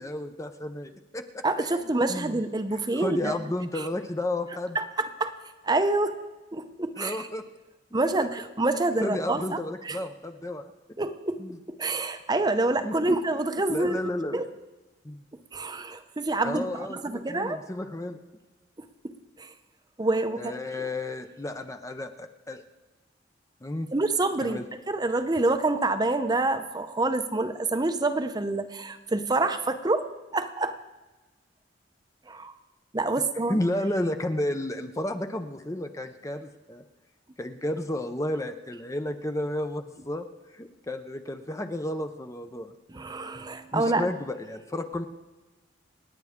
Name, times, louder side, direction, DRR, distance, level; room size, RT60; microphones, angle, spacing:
voice 1, 0.0-1.8 2.1-2.4 2.7-4.8 7.0-7.4 9.0-10.7 11.4-11.6 12.8-13.2 13.7-14.4 15.0-15.2 16.4-18.2 20.4-22.6 23.6-23.9 24.4-24.6 33.5-36.8 37.4-42.7 43.7-45.1, left 1 dB, 15° left, 7 dB, 0.6 m, -32 dB
voice 2, 1.4-3.4 3.7-3.9 4.7-5.3 5.6-6.2 6.5-7.3 7.9-10.0 11.0-11.4 11.7-14.0 14.3-14.4 15.5-17.6 19.4-19.5 20.0-20.5 23.9-24.6 24.9-30.8 32.3-32.5 32.9-33.6 42.9-44.1, right 2 dB, 20° right, 9 dB, 0.7 m, -27 dB
27.5 x 9.5 x 3.6 m, 1.2 s
head